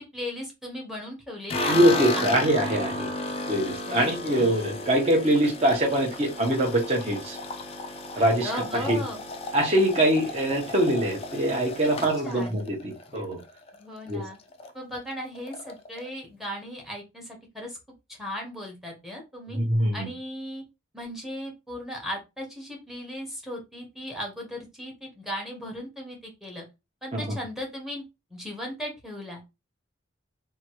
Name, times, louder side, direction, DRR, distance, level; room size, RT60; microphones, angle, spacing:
voice 1, 0.0-2.5 3.9-4.7 8.4-9.2 12.2-12.6 13.7-14.4 14.7-17.8 18.1-19.6 19.9-20.6 20.9-26.6 27.0-28.0 28.3-29.6, equal, ahead, 1 dB, 0.9 m, -37 dB
sound 1, 1.5-13.8 14.1-14.7 15.0-15.1 15.4-16.1, left 2 dB, 30° left, 0.3 m, -34 dB
voice 2, 1.7-3.1 3.5-7.4 8.2-9.0 9.5-13.4 14.1-14.2 19.5-20.1 27.1-27.3, right 1 dB, 30° right, 0 dB, 0.8 m, -23 dB
2.9 x 2.3 x 2.9 m, 0.25 s
head